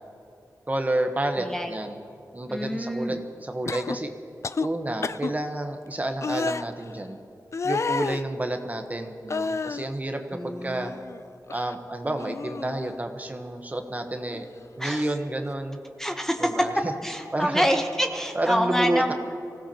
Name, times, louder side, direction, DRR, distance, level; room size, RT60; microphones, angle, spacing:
voice 1, 0.7-2.0 2.3-4.1 4.6-7.2 7.6-10.9 11.5-14.5 14.8-15.8 16.4-16.9 17.3-17.6 18.3-19.1, right 1 dB, 25° right, 5 dB, 1.1 m, -30 dB
voice 2, 1.3-1.7 2.5-3.2 10.3-11.0 14.8-15.0 16.0-16.5 17.0-19.1, equal, 5° left, 4 dB, 0.9 m, -27 dB
sound 1, 3.7-4.0 4.4-4.7 5.0-5.3 6.2-6.6 7.5-8.2 9.3-9.9 10.3-11.2 11.5-11.7 12.2-13.0 14.2-14.4, left 4 dB, 45° left, 0.4 m, -30 dB
24.5 x 16.5 x 2.9 m, 2.6 s
wide cardioid pair, 95°, 7 cm